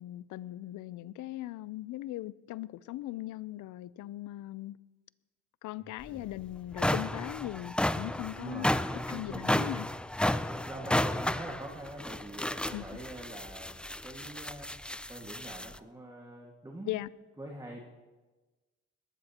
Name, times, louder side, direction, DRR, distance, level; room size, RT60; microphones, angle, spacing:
voice 1, 0.0-4.8 5.6-8.7 9.1-9.9 12.7-13.0 16.8-17.1, left 16 dB, 80° left, 0.5 m, -39 dB
voice 2, 5.8-6.3 8.3-9.5 10.5-13.7 14.0-14.7 15.1-17.0 17.4-17.8, right 1 dB, 10° right, 1.8 m, -44 dB
sound 1, 6.0-6.1 6.6-15.8, left 1 dB, 5° left, 0.3 m, -32 dB
20.5 x 15.0 x 2.9 m
cardioid pair, 90°, 30 cm